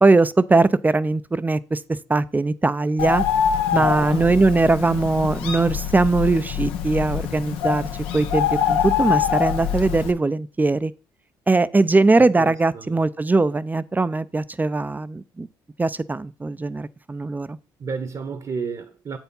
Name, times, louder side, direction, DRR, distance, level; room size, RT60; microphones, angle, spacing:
voice 1, 0.0-1.8 2.1-3.2 3.7-7.8 8.1-10.9 11.5-15.5 15.8-17.6, right 3 dB, 20° right, 0.5 m, -20 dB
Bird, 3.0-10.1, left 9 dB, 85° left, 0.9 m, -24 dB
voice 2, 3.7-4.4 12.2-13.1 17.8-19.2, right 5 dB, 45° right, 1.1 m, -32 dB
7.9 x 4.5 x 5.4 m
supercardioid pair, 65°, 9 cm